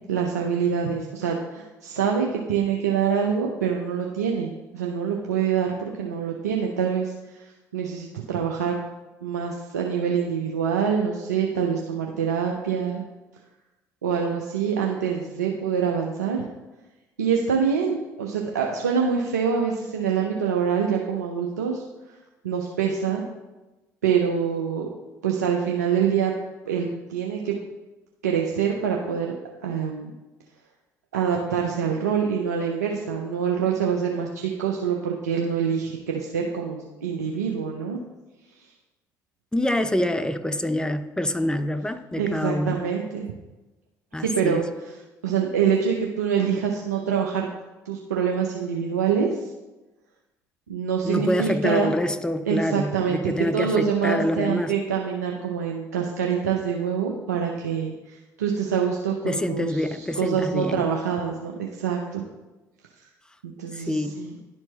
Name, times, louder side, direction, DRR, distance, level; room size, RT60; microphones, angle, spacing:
voice 1, 0.1-7.5 7.7-8.8 9.2-13.0 14.0-16.4 17.2-21.8 22.1-22.2 22.4-23.2 24.0-24.9 25.2-26.3 26.7-27.6 28.2-29.3 29.6-30.1 31.1-38.0 42.2-43.3 44.2-44.6 45.2-47.5 47.9-49.4 50.7-51.9 52.5-59.8 60.2-62.3 63.4-64.3, right 7 dB, 90° right, 0 dB, 0.5 m, -25 dB
voice 2, 39.5-42.9 44.1-44.6 51.0-54.8 59.3-60.9 63.7-64.3, left 1 dB, 10° left, 10 dB, 0.6 m, -26 dB
11.0 x 4.4 x 2.9 m, 1.1 s
hypercardioid pair, 55°, 9 cm